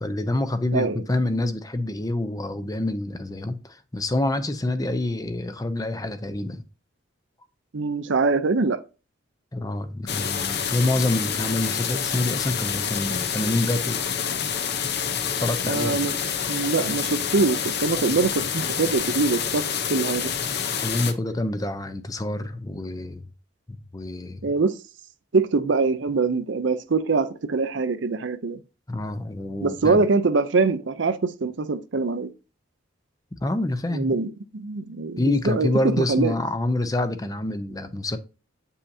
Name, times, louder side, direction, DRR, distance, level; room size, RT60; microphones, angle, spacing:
voice 1, 0.0-6.6 9.5-14.0 15.4-16.0 20.8-23.2 23.9-24.4 28.9-30.0 33.4-34.2 35.2-38.2, left 1 dB, 20° left, 0.6 m, -27 dB
voice 2, 0.7-1.0 7.7-8.8 15.6-16.1 16.5-19.6 19.9-20.3 24.4-24.7 25.3-28.6 29.6-32.3 33.9-35.7 36.0-36.3, right 4 dB, 65° right, 0.6 m, -23 dB
sound 1, 10.1-21.1, left 7 dB, 55° left, 0.7 m, -27 dB
8.4 x 5.5 x 2.7 m
head